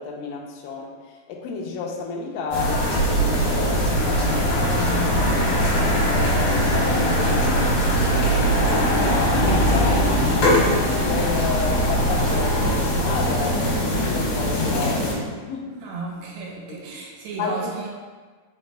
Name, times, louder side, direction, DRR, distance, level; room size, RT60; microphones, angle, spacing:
voice 1, 0.0-5.5 5.9-7.7 8.0-15.7 17.4-17.9, left 4 dB, 85° left, -1 dB, 2.0 m, -32 dB
sound 1, 2.5-15.1, equal, 65° left, 2.0 m, -21 dB
voice 2, 15.8-17.9, right 4 dB, 85° right, -2 dB, 2.8 m, -34 dB
4.9 x 4.6 x 2.2 m, 1.4 s
omnidirectional pair, 4.8 m